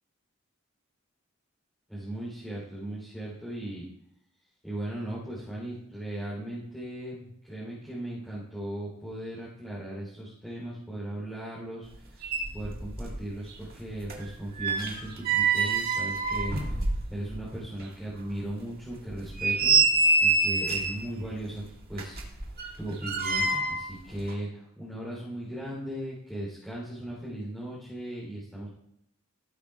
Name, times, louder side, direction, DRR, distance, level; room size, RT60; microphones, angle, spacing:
voice 1, 1.9-3.9 4.6-12.3 12.5-21.6 21.9-22.2 22.8-28.7, right 1 dB, ahead, -8 dB, 3.5 m, -37 dB
sound 1, 11.9-12.0 12.2-13.2 13.5-17.4 17.8-17.9 18.4-18.5 19.1-21.1 21.9-23.9 24.2-24.3, right 3 dB, 45° right, 1.9 m, -26 dB
16.5 x 8.7 x 2.4 m, 0.75 s
head